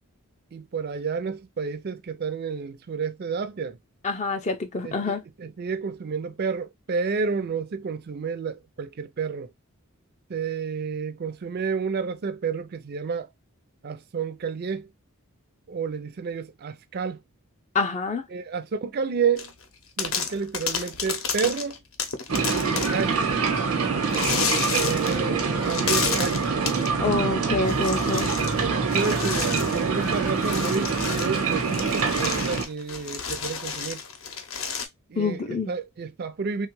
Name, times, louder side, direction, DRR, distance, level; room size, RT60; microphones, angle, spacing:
voice 1, 0.5-3.8 4.8-9.5 10.3-13.3 13.8-14.9 15.7-17.2 18.3-19.5 20.0-21.8 22.7-23.3 24.6-26.5 28.6-34.0 35.1-36.7, right 5 dB, 45° right, 0.4 m, -30 dB
voice 2, 4.0-5.2 17.7-18.2 27.0-28.3 35.2-35.7, left 3 dB, 30° left, 0.4 m, -26 dB
sound 1, 19.4-19.6 20.0-23.1 24.1-25.3 25.6-26.9 27.6-28.6 28.9-34.9, left 6 dB, 65° left, 0.7 m, -31 dB
sound 2, 22.3-32.6, right 5 dB, 90° right, 0.9 m, -25 dB
3.2 x 2.3 x 3.0 m
head